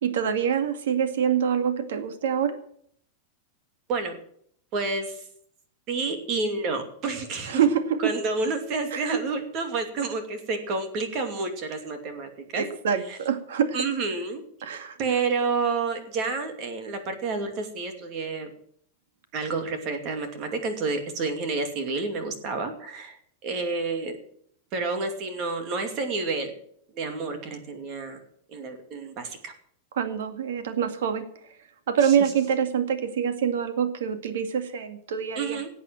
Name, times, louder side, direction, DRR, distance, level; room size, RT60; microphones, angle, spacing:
voice 1, 0.0-2.6 7.5-8.1 8.9-9.2 12.6-13.8 14.6-15.2 30.0-31.6 31.9-35.6, right 8 dB, 90° right, 9 dB, 2.1 m, -25 dB
voice 2, 4.7-5.3 5.9-7.6 8.0-12.6 13.1-13.2 13.7-14.4 15.0-18.5 19.3-23.2 23.4-24.1 24.7-26.5 26.9-28.2 28.5-29.5 35.4-35.7, right 4 dB, 30° right, 6 dB, 2.6 m, -29 dB
17.5 x 8.3 x 7.6 m, 0.65 s
supercardioid pair, 175°, 0 cm